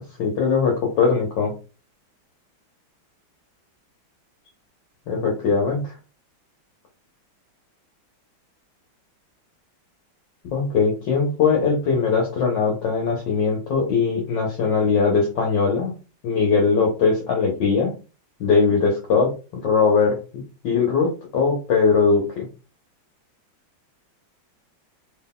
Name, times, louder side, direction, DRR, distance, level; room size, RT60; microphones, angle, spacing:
voice 1, 0.2-1.5 5.1-5.9 10.4-15.9 16.2-17.9 18.4-19.3 19.6-22.5, left 5 dB, 65° left, -1 dB, 1.5 m, -20 dB
3.9 x 3.6 x 2.3 m, 0.33 s
omnidirectional pair, 2.3 m